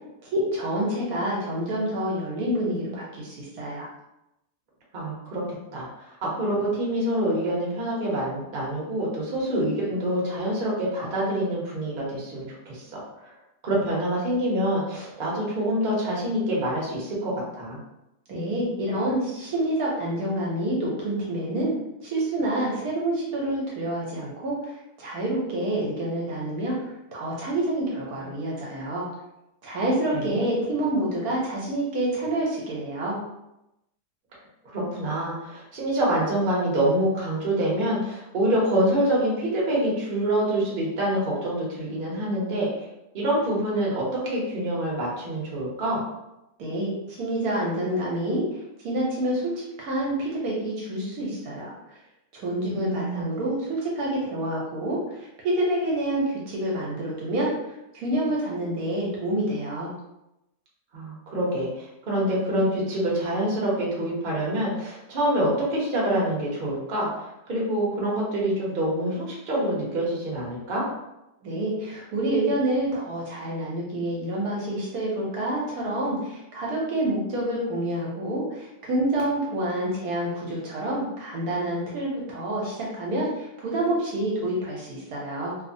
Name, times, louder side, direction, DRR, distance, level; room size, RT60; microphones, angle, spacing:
voice 1, 0.2-3.9 18.3-21.7 22.0-29.1 29.6-33.2 46.6-52.0 52.3-59.9 71.4-85.6, right 1 dB, 70° right, -4 dB, 1.0 m, -28 dB
voice 2, 4.9-5.4 5.7-13.3 13.6-17.8 30.1-30.4 34.6-42.9 43.1-46.0 52.7-53.3 60.9-67.1 67.5-70.8, right 1 dB, 45° right, -4 dB, 0.7 m, -26 dB
2.8 x 2.0 x 2.5 m, 0.90 s
omnidirectional pair, 1.8 m